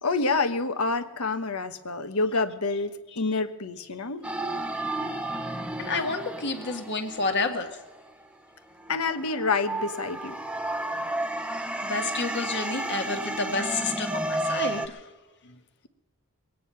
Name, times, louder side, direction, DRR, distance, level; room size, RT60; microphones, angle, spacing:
voice 1, 0.0-4.2 8.9-10.4 15.4-15.6, left 3 dB, 75° left, 9 dB, 1.1 m, -28 dB
sound 1, 4.2-8.3 8.8-14.9, right 1 dB, 5° right, 0.8 m, -32 dB
voice 2, 5.8-7.8 11.8-15.1, left 3 dB, 55° left, 4 dB, 1.8 m, -30 dB
22.5 x 9.3 x 5.6 m, 1.2 s
head